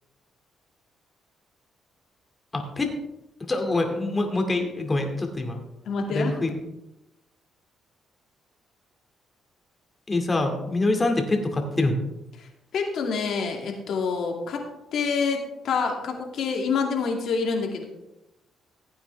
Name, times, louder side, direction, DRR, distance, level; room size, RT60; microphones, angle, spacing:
voice 1, 2.5-2.9 3.5-5.6 6.1-6.5 10.1-12.0, left 2 dB, 25° left, 4 dB, 2.4 m, -25 dB
voice 2, 5.9-6.3 12.4-14.7 14.9-17.9, left 5 dB, 70° left, 1 dB, 2.5 m, -27 dB
16.0 x 8.9 x 3.5 m, 0.93 s
cardioid pair, 90°, 0 cm